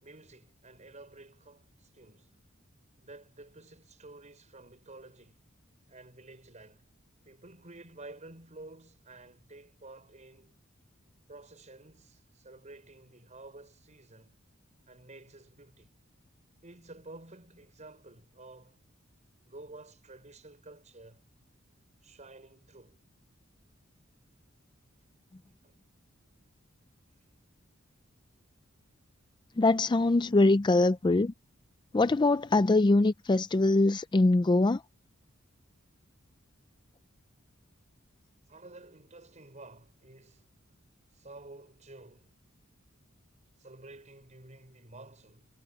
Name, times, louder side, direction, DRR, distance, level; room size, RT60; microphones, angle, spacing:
voice 1, 0.0-2.3 3.0-5.4 5.9-6.9 7.2-10.6 11.3-14.4 14.9-16.0 16.6-18.8 19.5-21.2 22.0-23.0 25.6-25.7 38.5-40.5 41.1-42.3 43.6-45.5, right 2 dB, 35° right, 5.9 m, -51 dB
voice 2, 29.6-31.3 31.9-34.8, left 2 dB, 20° left, 0.4 m, -23 dB
head